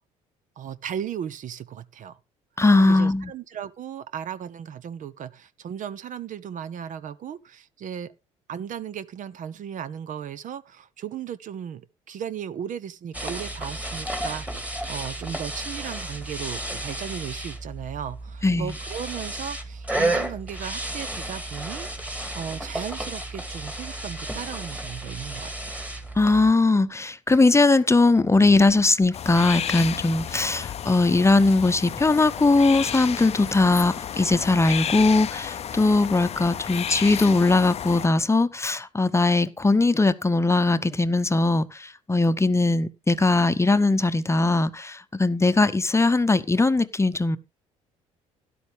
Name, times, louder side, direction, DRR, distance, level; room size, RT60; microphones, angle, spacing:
voice 1, 0.6-2.2 2.8-8.1 8.5-25.7, right 9 dB, 55° right, 0.8 m, -36 dB
voice 2, 2.6-3.3 18.4-18.7 26.2-47.4, left 3 dB, 15° left, 0.8 m, -20 dB
sound 1, 13.1-26.5, right 1 dB, 10° right, 2.2 m, -32 dB
sound 2, 29.1-38.1, left 9 dB, 40° left, 0.5 m, -32 dB
12.5 x 11.0 x 3.3 m
hypercardioid pair, 65°, 16 cm